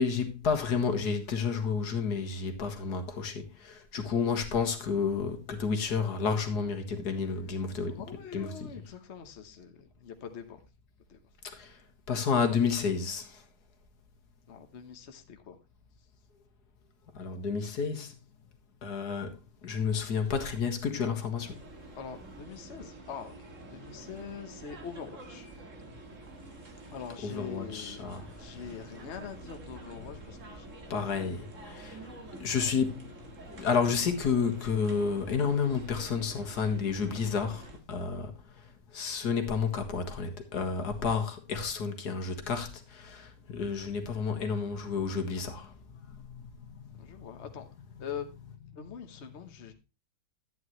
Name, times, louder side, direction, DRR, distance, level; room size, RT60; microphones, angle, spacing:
voice 1, 0.0-8.0 8.3-8.7 11.4-11.8 12.1-13.4 17.2-18.1 18.8-19.3 19.6-21.6 27.2-28.3 28.6-28.7 30.9-31.4 31.6-32.0 32.4-33.1 33.5-38.3 38.9-45.7 46.1-46.5 47.2-47.3, left 5 dB, 80° left, 2.1 m, -30 dB
voice 2, 7.8-10.6 11.1-11.2 14.5-15.6 21.9-25.5 26.9-31.4 32.9-33.0 46.9-47.7 48.0-48.3 48.7-49.7, left 7 dB, 45° left, 1.3 m, -44 dB
sound 1, 21.3-37.8, right 2 dB, 50° right, 2.2 m, -48 dB
12.0 x 9.4 x 3.1 m
omnidirectional pair, 1.7 m